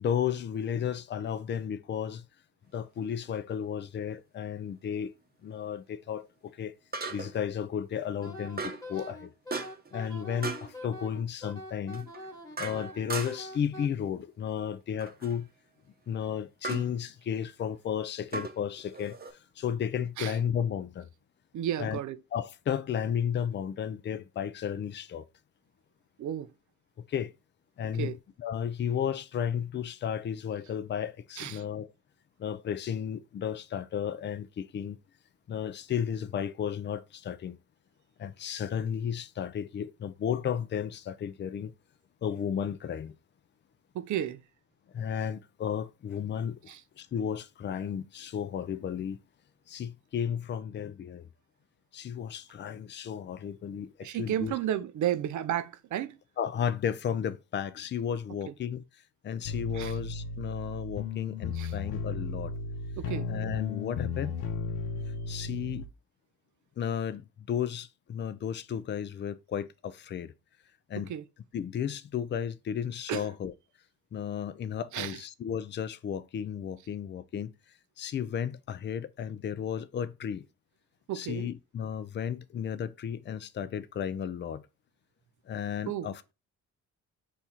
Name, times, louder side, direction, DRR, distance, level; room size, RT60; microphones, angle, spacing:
voice 1, 0.0-2.2 2.7-5.1 5.4-6.7 7.1-9.3 9.9-12.1 12.6-15.5 16.1-19.2 19.6-21.1 21.8-22.0 22.3-25.2 27.1-27.3 27.8-28.1 28.4-31.9 32.4-35.0 35.5-37.6 38.2-41.7 42.2-43.1 44.9-49.2 49.7-51.3 51.9-54.5 56.4-58.8 59.2-62.5 63.3-64.4 65.3-65.9 66.8-70.3 70.9-71.1 71.5-73.5 74.1-77.5 78.0-80.5 81.1-84.6 85.5-86.3, left 8 dB, 25° left, 0.4 m, -33 dB
sound 1, 3.2-3.4 6.9-7.5 8.6-8.9 9.5-9.9 10.4-10.7 11.9-13.6 15.0-15.4 16.6-16.9 18.3-19.3, right 4 dB, 20° right, 0.8 m, -37 dB
Wind instrument woodwind instrument, 8.2-13.9, left 1 dB, 10° left, 1.4 m, -44 dB
voice 2, 21.5-22.2 26.2-26.5 28.0-28.2 31.4-31.6 43.9-44.4 46.7-46.8 54.0-56.2 58.5-58.6 59.7-60.0 61.5-61.7 63.0-63.3 71.0-71.3 73.1-73.3 74.9-75.2 81.1-81.5 85.9-86.1, right 11 dB, 45° right, 0.5 m, -33 dB
sound 2, 59.4-65.9, left 4 dB, 60° left, 0.7 m, -35 dB
4.2 x 2.4 x 4.2 m
hypercardioid pair, 45°, 43 cm